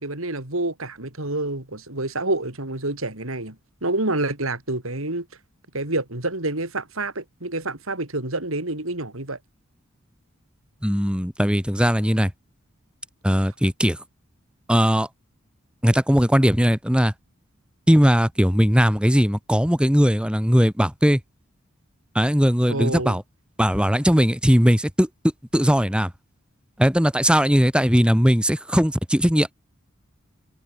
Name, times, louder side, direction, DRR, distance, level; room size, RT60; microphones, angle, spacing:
voice 1, 0.0-3.6 3.8-5.3 5.7-9.4 22.7-23.2, right 2 dB, 80° right, 4.5 m, -28 dB
voice 2, 10.8-12.3 13.2-14.0 14.7-15.1 15.8-17.1 17.9-21.2 22.1-23.2 23.6-25.1 25.5-26.1 26.8-29.5, equal, 5° right, 3.3 m, -19 dB
head